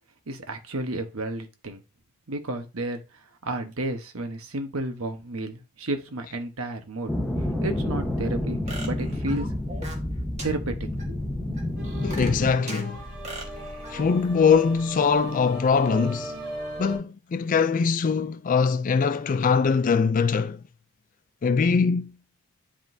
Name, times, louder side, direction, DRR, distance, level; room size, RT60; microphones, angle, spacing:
voice 1, 0.3-1.8 2.3-7.1 7.6-9.5 10.4-11.2, right 2 dB, 70° right, 1.1 m, -32 dB
sound 1, 7.1-12.5, left 1 dB, 5° left, 1.0 m, -29 dB
sound 2, 8.7-10.1 10.4-10.5 11.0-11.1 11.6-12.8 13.2-14.0, right 2 dB, 30° right, 1.6 m, -39 dB
sound 3, 11.8-17.0, right 1 dB, 45° right, 2.6 m, -38 dB
voice 2, 12.0-13.0 13.9-16.4 16.8-20.6 21.4-22.2, left 5 dB, 35° left, 0.3 m, -22 dB
10.0 x 3.7 x 2.7 m
head